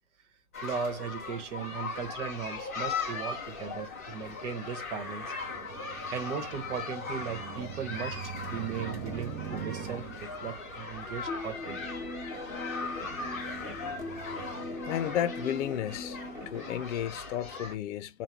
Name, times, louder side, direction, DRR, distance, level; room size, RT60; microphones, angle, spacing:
sound 1, 0.5-17.7, left 4 dB, 15° left, 0.3 m, -39 dB
voice 1, 0.6-5.3 6.1-11.8, right 7 dB, 60° right, 1.2 m, -37 dB
sound 2, 2.7-3.1 3.4-14.8, right 7 dB, 30° right, 0.6 m, -45 dB
sound 3, 11.3-16.7, left 2 dB, 5° right, 1.2 m, -40 dB
voice 2, 14.9-16.2 16.5-18.2, left 10 dB, 60° left, 0.6 m, -32 dB
3.6 x 2.3 x 4.4 m
hypercardioid pair, 140°, 40 cm